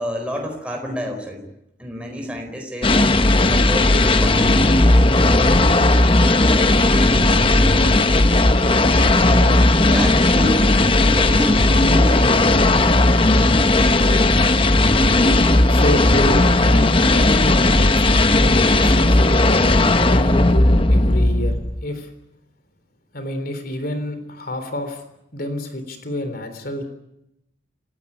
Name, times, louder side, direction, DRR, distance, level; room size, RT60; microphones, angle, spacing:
voice 1, 0.0-1.4 1.8-5.8 6.5-8.1 9.1-12.4, equal, 5° right, 2 dB, 4.4 m, -29 dB
sound 1, 2.8-21.8, left 2 dB, 30° left, 1.0 m, -15 dB
voice 2, 15.7-19.5 20.0-22.1 23.1-25.0 25.3-26.8, left 1 dB, 50° left, 8 dB, 3.6 m, -28 dB
30.0 x 15.5 x 9.9 m, 0.85 s
head